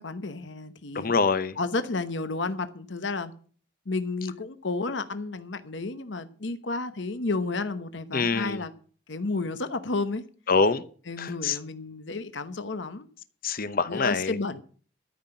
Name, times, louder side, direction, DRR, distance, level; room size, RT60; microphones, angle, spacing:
voice 1, 0.0-1.1 1.6-3.3 3.9-8.7 9.1-10.2 11.1-13.1 13.9-14.6, left 3 dB, 75° left, 1.0 m, -31 dB
voice 2, 0.9-1.6 8.1-8.6 10.5-10.8 11.2-11.6 13.4-14.4, left 4 dB, 50° left, 0.9 m, -25 dB
13.5 x 5.9 x 9.0 m
head